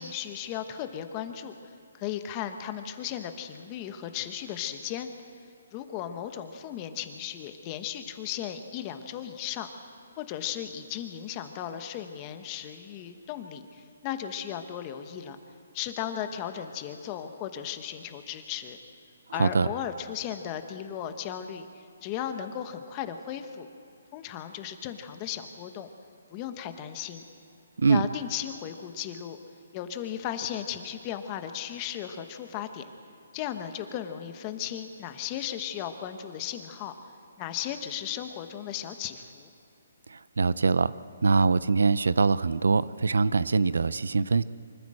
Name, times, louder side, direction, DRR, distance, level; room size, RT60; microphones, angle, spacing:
voice 1, 0.0-1.5 2.0-5.1 5.7-9.7 10.2-15.4 15.7-18.8 19.3-23.7 24.1-25.9 26.3-27.2 27.9-29.4 29.7-32.8 33.3-36.9 37.4-39.5, left 10 dB, 20° left, 8 dB, 1.1 m, -36 dB
voice 2, 19.3-19.7 27.8-28.0 40.1-40.9 41.2-44.4, right 4 dB, 85° right, 17 dB, 0.6 m, -23 dB
24.5 x 14.0 x 7.7 m, 2.7 s
hypercardioid pair, 165°, 0 cm